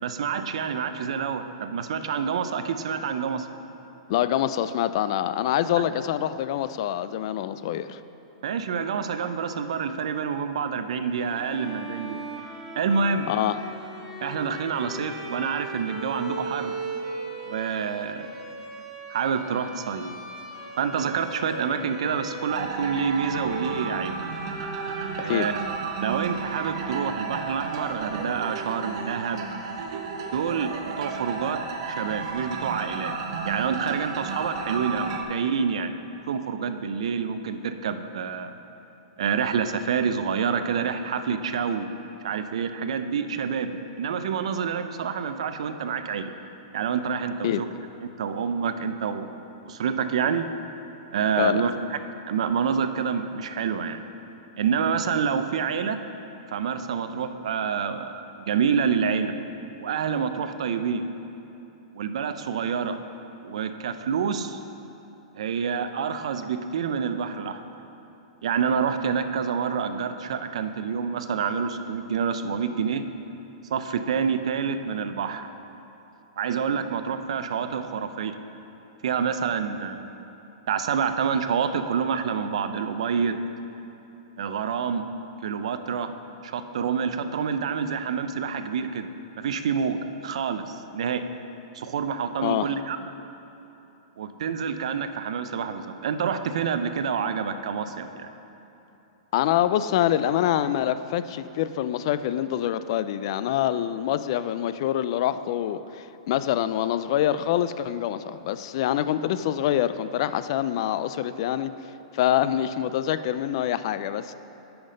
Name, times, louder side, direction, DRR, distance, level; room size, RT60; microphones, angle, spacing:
voice 1, 0.0-3.5 5.8-5.9 8.4-12.2 12.7-13.3 14.2-16.8 17.4-18.3 19.1-20.1 20.8-24.2 25.2-25.6 26.0-29.5 30.3-31.6 31.9-33.2 33.4-36.0 36.3-38.5 39.2-41.9 42.2-43.7 44.0-46.3 46.7-47.7 48.2-49.3 49.6-50.5 51.1-52.0 52.3-54.0 54.6-56.0 56.5-59.3 59.8-61.1 61.9-63.0 63.4-64.6 65.4-67.6 68.4-73.0 73.7-75.5 76.4-78.3 79.0-80.1 80.7-83.4 84.4-85.1 85.4-86.1 86.4-89.1 89.4-91.2 91.7-93.0 94.2-98.3, right 6 dB, 75° right, 9 dB, 0.5 m, -27 dB
voice 2, 4.1-8.0 13.3-13.6 25.2-25.5 47.4-47.6 51.4-51.6 92.4-92.7 99.3-111.7 112.1-114.3, left 11 dB, 50° left, 13 dB, 0.3 m, -25 dB
Bowed string instrument, 11.1-29.0, right 2 dB, 20° right, 1.0 m, -39 dB
sound 1, 22.5-35.2, right 5 dB, 55° right, 0.9 m, -33 dB
8.8 x 5.9 x 5.2 m, 3.0 s
hypercardioid pair, 150°, 3 cm